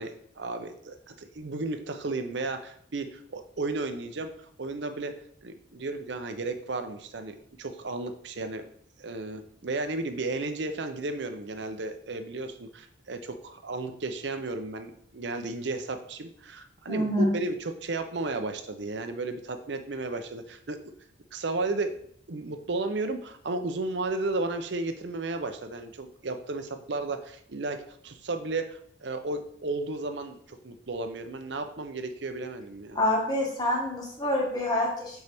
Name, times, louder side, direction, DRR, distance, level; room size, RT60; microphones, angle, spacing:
voice 1, 0.0-5.1 5.4-8.6 9.0-20.8 21.3-22.0 22.3-27.8 28.0-33.0, right 3 dB, 65° right, 8 dB, 0.6 m, -34 dB
voice 2, 16.9-17.3 32.9-35.2, left 1 dB, 20° left, -2 dB, 1.5 m, -26 dB
6.7 x 4.6 x 3.5 m, 0.65 s
head